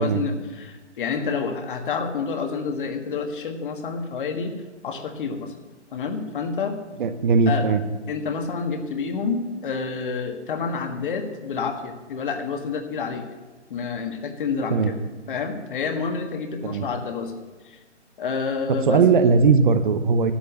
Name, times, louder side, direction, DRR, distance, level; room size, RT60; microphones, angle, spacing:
voice 1, 0.0-5.5 5.9-6.8 7.5-7.7 8.1-13.3 13.7-15.0 15.3-17.3 17.6-17.8 18.2-19.1, left 5 dB, 45° left, 6 dB, 1.6 m, -28 dB
voice 2, 7.0-7.8 14.7-14.9 16.6-16.9 18.9-20.3, right 5 dB, 45° right, 10 dB, 0.9 m, -18 dB
11.5 x 8.3 x 6.7 m, 1.3 s
figure-of-eight pair, 140°, 36 cm